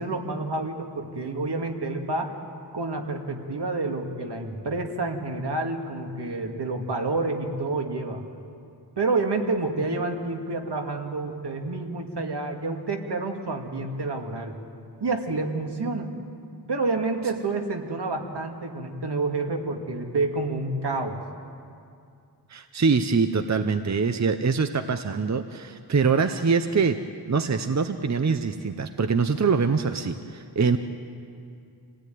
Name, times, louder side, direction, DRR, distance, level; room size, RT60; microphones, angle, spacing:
voice 1, 0.0-2.3 2.7-8.2 9.0-14.6 15.0-16.1 16.7-21.2, right 3 dB, 70° right, 3 dB, 2.3 m, -28 dB
voice 2, 22.5-27.0 27.3-30.8, right 5 dB, 40° right, 8 dB, 0.8 m, -24 dB
27.5 x 17.0 x 9.4 m, 2.4 s
wide cardioid pair, 110°, 42 cm